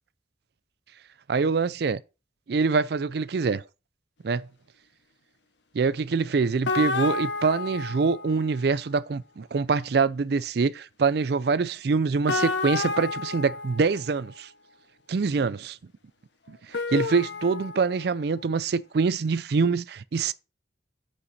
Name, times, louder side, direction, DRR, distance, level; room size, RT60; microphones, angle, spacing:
voice 1, 1.3-2.0 2.5-3.6 4.2-4.5 5.7-14.5 15.1-15.8 16.5-20.3, right 4 dB, 55° right, 0.4 m, -25 dB
sound 1, 6.6-8.6 12.3-14.4 16.7-18.3, left 3 dB, 70° left, 1.0 m, -30 dB
8.3 x 5.6 x 4.1 m
head